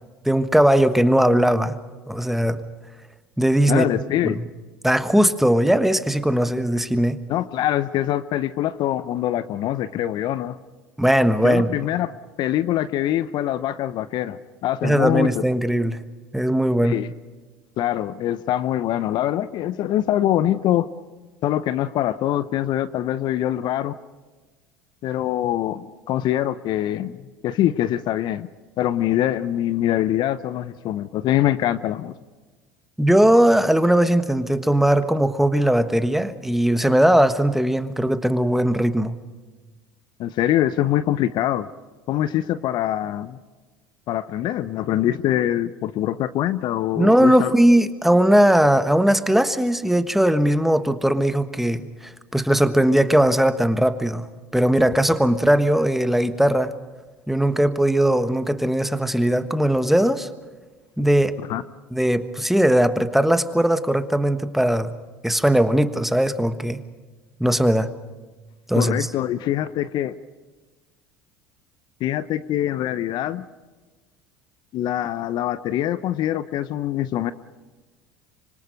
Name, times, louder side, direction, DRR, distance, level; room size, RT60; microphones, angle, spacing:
voice 1, 0.2-1.7 2.1-2.6 3.4-3.9 4.2-4.4 4.8-7.2 11.0-11.7 14.8-16.0 16.3-17.0 33.0-39.1 47.0-54.3 54.5-56.7 57.3-60.3 61.0-61.4 61.9-64.9 65.2-66.8 67.4-67.9 68.7-69.1, right 1 dB, 5° right, 11 dB, 1.3 m, -19 dB
voice 2, 3.7-4.4 7.3-10.6 11.4-15.4 16.8-17.1 17.8-20.9 21.4-24.0 25.0-27.2 27.4-28.5 28.8-32.1 40.2-41.7 42.1-43.4 44.1-47.5 61.5-61.6 68.7-70.1 72.0-73.4 74.7-77.3, left 12 dB, 50° left, 15 dB, 0.8 m, -24 dB
25.5 x 25.0 x 5.2 m, 1.3 s
hypercardioid pair, 70°, 9 cm